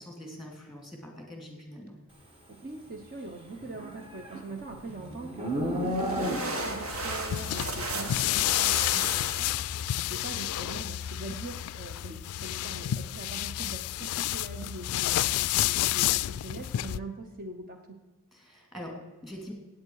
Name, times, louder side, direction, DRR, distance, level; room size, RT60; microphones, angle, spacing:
voice 1, 0.0-2.0 18.3-19.5, equal, ahead, 1 dB, 2.8 m, -43 dB
voice 2, 2.5-18.0, right 3 dB, 40° right, 4 dB, 0.9 m, -43 dB
Livestock farm animals working animals, 3.6-6.8, equal, 25° right, 1.6 m, -32 dB
sound 1, 5.5-10.5, right 2 dB, 65° right, 1.8 m, -36 dB
sound 2, 6.9-17.0, left 14 dB, 75° left, 0.3 m, -30 dB
16.5 x 8.8 x 4.8 m, 1.3 s
head